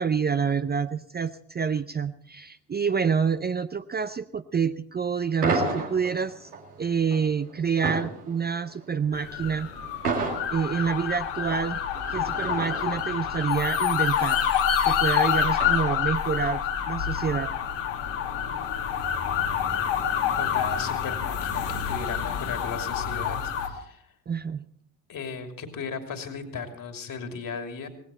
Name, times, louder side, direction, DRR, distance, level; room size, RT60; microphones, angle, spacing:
voice 1, 0.0-6.5 6.8-9.7 10.5-11.8 12.1-14.4 14.8-17.5 24.3-24.6, right 6 dB, 20° right, 11 dB, 0.6 m, -27 dB
sound 1, 5.4-16.3, right 3 dB, 85° right, 2.2 m, -34 dB
sound 2, 9.1-23.7, left 8 dB, 65° left, 2.2 m, -27 dB
voice 2, 20.4-24.1 25.1-27.9, left 5 dB, 45° left, 6 dB, 2.9 m, -36 dB
18.5 x 16.5 x 4.4 m, 0.65 s
figure-of-eight pair, 50°, 45 cm